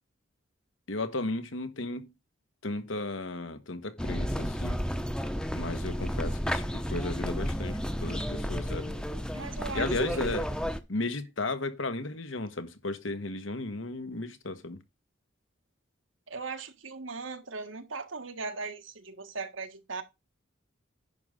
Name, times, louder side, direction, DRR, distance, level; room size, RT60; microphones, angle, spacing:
voice 1, 0.9-2.1 2.6-4.8 5.5-8.9 9.7-10.5 10.9-14.8, left 2 dB, 85° left, 1.4 m, -34 dB
sound 1, 4.0-10.8, equal, 5° left, 0.8 m, -32 dB
voice 2, 9.3-10.4 16.3-20.0, right 4 dB, 85° right, 1.6 m, -39 dB
10.5 x 3.7 x 6.8 m
head